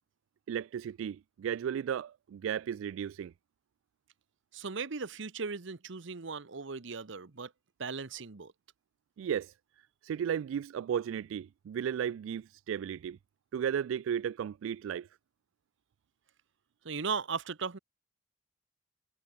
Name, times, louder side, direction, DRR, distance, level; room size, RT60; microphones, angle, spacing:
voice 1, 0.5-3.3 9.2-9.5 10.0-13.2 13.5-15.1, right 8 dB, 85° right, 0.3 m, -34 dB
voice 2, 4.5-7.5 7.8-8.5 16.8-17.8, right 5 dB, 70° right, 1.0 m, -37 dB
head